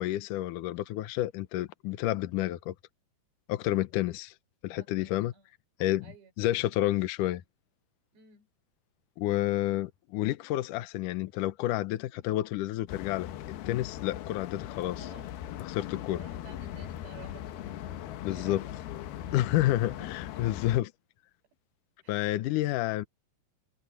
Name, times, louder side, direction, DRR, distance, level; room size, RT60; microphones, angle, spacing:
voice 1, 0.0-2.7 3.5-4.3 4.6-5.3 5.8-7.4 9.2-13.3 13.7-15.1 15.6-16.3 18.2-18.6 19.3-20.9 22.1-23.0, left 15 dB, 90° left, 1.8 m, -30 dB
voice 2, 4.8-5.4 6.0-6.3 8.1-8.5 15.0-15.3 15.7-18.8 19.3-19.4 19.7-20.4 22.0-22.3, right 7 dB, 90° right, 6.8 m, -54 dB
sound 1, 12.9-20.8, left 12 dB, 75° left, 2.8 m, -39 dB
omnidirectional pair, 4.9 m